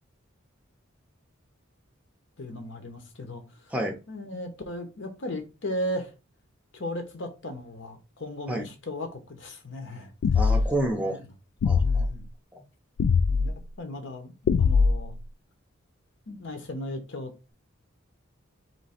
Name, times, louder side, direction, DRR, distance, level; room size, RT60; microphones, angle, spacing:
voice 1, 2.4-3.7 4.1-6.1 6.7-10.5 11.0-11.2 11.8-12.2 13.3-15.1 16.3-17.3, left 1 dB, 60° left, 0.9 m, -36 dB
sound 1, 10.2-10.8 11.6-12.1 13.0-13.5 14.5-15.2, left 5 dB, 85° left, 0.3 m, -21 dB
voice 2, 10.3-11.2 11.6-12.1, right 1 dB, 5° right, 0.6 m, -29 dB
3.2 x 3.0 x 4.3 m
head